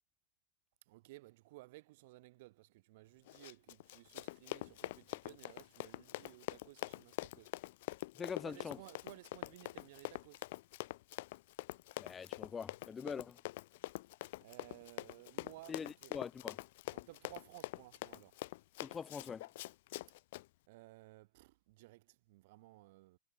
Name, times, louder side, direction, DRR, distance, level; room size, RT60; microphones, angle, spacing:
voice 1, 0.9-7.5 8.4-10.5 14.4-16.1 16.9-18.4 20.7-23.2, right 20 dB, 50° right, 3.6 m, -57 dB
Run, 3.3-20.5, left 18 dB, 50° left, 1.8 m, -45 dB
voice 2, 8.2-8.8 12.0-13.4 15.7-16.6 18.8-19.5, left 6 dB, 20° left, 1.3 m, -43 dB
figure-of-eight pair, 90°, 0 cm